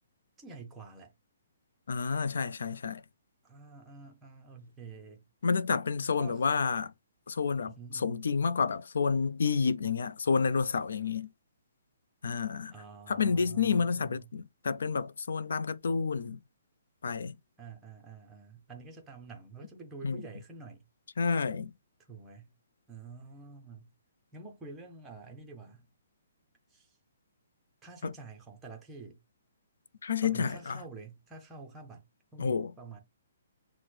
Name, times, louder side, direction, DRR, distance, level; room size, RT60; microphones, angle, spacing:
voice 1, 0.4-1.1 3.4-5.3 6.2-6.4 7.7-8.3 12.7-14.3 17.6-20.8 22.1-22.5 22.9-23.9 24.3-25.9 26.7-26.9 27.8-29.2 30.2-32.0 32.3-33.0, right 4 dB, 5° right, 0.5 m, -48 dB
voice 2, 1.9-3.0 5.4-6.9 7.3-11.3 12.2-12.7 13.1-16.4 17.0-17.3 20.0-20.2 21.2-21.7 28.0-28.1 30.0-30.8 32.4-32.7, left 5 dB, 70° left, 0.4 m, -29 dB
6.0 x 2.0 x 3.1 m
hypercardioid pair, 175°, 0 cm